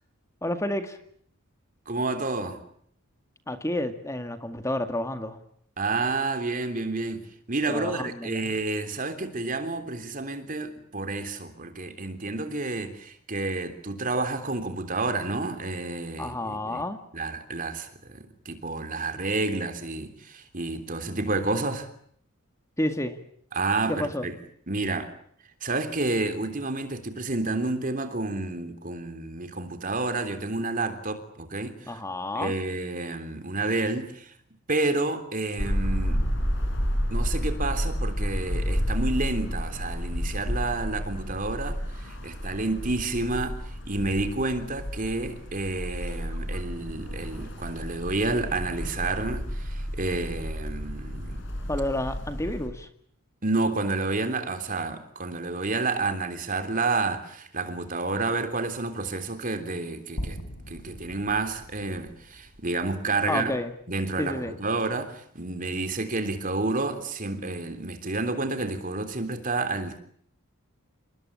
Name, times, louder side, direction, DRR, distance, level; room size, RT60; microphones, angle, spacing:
voice 1, 0.4-1.0 3.5-5.4 7.7-8.5 16.2-17.0 22.8-23.2 23.9-24.3 31.9-32.5 51.7-52.9 63.3-63.7 64.2-64.5, left 1 dB, 15° left, 2.0 m, -30 dB
voice 2, 1.9-2.6 5.8-16.8 17.1-21.9 23.5-24.3 24.7-25.1 25.6-32.0 32.3-34.3 34.7-36.2 37.1-51.4 53.4-60.4 60.7-63.6 63.9-70.0, right 3 dB, 40° right, 3.4 m, -30 dB
sound 1, 35.6-52.7, equal, 60° left, 5.5 m, -31 dB
sound 2, 60.2-64.4, equal, 80° left, 4.2 m, -41 dB
28.0 x 21.5 x 8.8 m
head